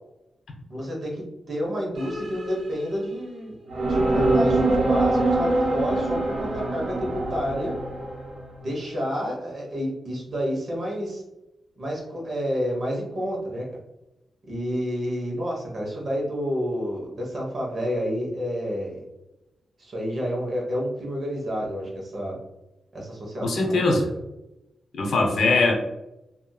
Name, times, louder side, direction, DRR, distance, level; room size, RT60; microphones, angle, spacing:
voice 1, 0.7-3.6 3.8-7.8 8.6-11.2 11.8-13.7 14.5-19.0 19.8-22.4 22.9-23.8, equal, 55° right, -2 dB, 1.0 m, -29 dB
sound 1, 2.0-3.1 3.7-8.4, right 2 dB, 90° right, 1.2 m, -24 dB
voice 2, 23.4-24.1 25.0-25.7, left 3 dB, 85° left, 1 dB, 0.6 m, -21 dB
2.7 x 2.7 x 2.2 m, 0.94 s
wide cardioid pair, 100°, 0 cm